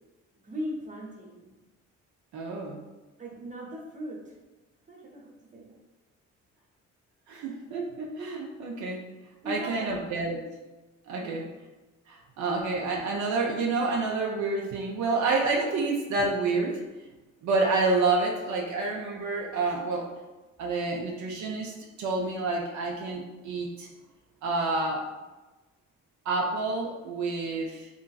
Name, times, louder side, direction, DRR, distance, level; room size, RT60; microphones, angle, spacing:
voice 1, 0.4-1.5 3.2-4.4 4.9-5.8 9.4-10.0 11.1-11.4, right 1 dB, 25° right, -2 dB, 0.8 m, -39 dB
voice 2, 2.3-2.8 7.3-9.0 9.5-10.4 11.1-11.4 12.1-16.8 17.4-20.1 20.6-21.7 22.0-23.9 24.4-25.0 26.3-27.9, right 3 dB, 70° right, -1 dB, 0.5 m, -28 dB
2.9 x 2.6 x 2.3 m, 1.1 s
cardioid pair, 90°, 30 cm